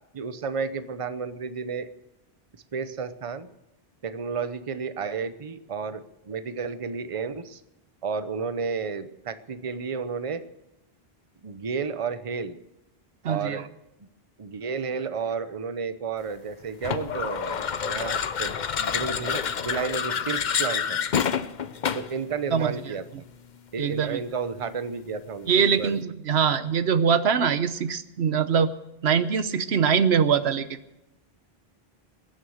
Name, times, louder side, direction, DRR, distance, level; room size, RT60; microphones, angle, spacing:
voice 1, 0.1-1.9 2.7-3.5 4.0-7.6 8.0-10.4 11.4-12.6 13.3-13.7 14.4-21.0 21.9-23.0 23.7-26.0, right 5 dB, 35° right, 12 dB, 0.8 m, -32 dB
voice 2, 13.2-13.6 22.5-22.7 23.8-24.2 25.5-28.7 29.0-30.8, right 7 dB, 90° right, 12 dB, 1.1 m, -23 dB
sound 1, 16.8-22.2, left 7 dB, 50° left, 0.8 m, -28 dB
21.5 x 9.5 x 6.5 m, 0.89 s
omnidirectional pair, 1.0 m